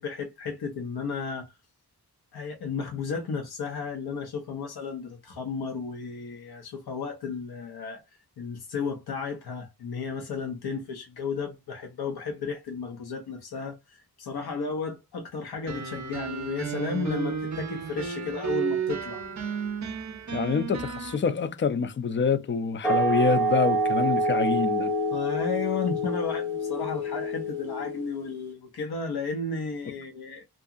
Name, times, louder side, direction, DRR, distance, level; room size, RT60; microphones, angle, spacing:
voice 1, 0.0-1.5 2.3-8.0 8.4-19.2 25.1-30.4, left 5 dB, 75° left, 0.7 m, -33 dB
sound 1, 15.7-21.2, right 7 dB, 45° right, 0.6 m, -32 dB
voice 2, 20.3-24.9, left 6 dB, 30° left, 0.4 m, -26 dB
sound 2, 22.8-28.3, right 1 dB, 5° left, 0.7 m, -27 dB
2.7 x 2.4 x 2.4 m
wide cardioid pair, 120°, 38 cm